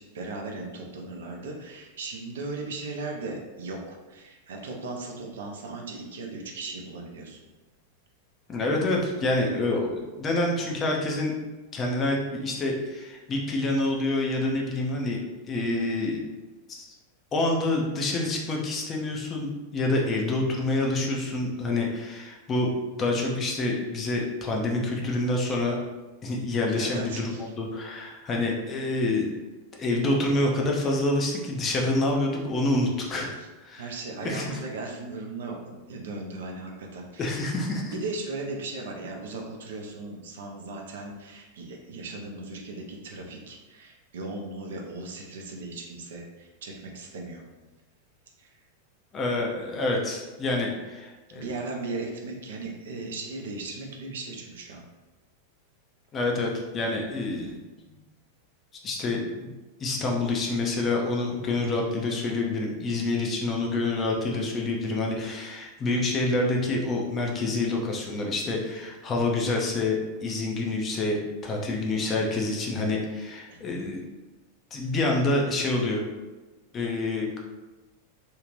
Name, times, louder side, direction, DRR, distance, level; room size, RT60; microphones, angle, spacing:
voice 1, 0.0-7.4 26.7-27.5 33.3-33.5 33.8-37.4 37.9-47.4 48.4-48.5 51.3-54.9 73.5-73.6, right 3 dB, 60° right, 1 dB, 0.5 m, -37 dB
voice 2, 8.5-11.4 11.7-15.2 15.5-16.2 16.7-16.9 17.3-25.8 26.2-29.3 29.7-33.3 33.6-33.8 34.2-34.6 37.2-37.9 49.1-51.5 56.1-57.6 57.9-58.0 58.8-59.5 59.8-74.0 74.7-76.0 76.7-77.4, left 2 dB, 25° left, 0 dB, 0.6 m, -27 dB
2.6 x 2.4 x 3.2 m, 1.2 s
figure-of-eight pair, 90°, 0 cm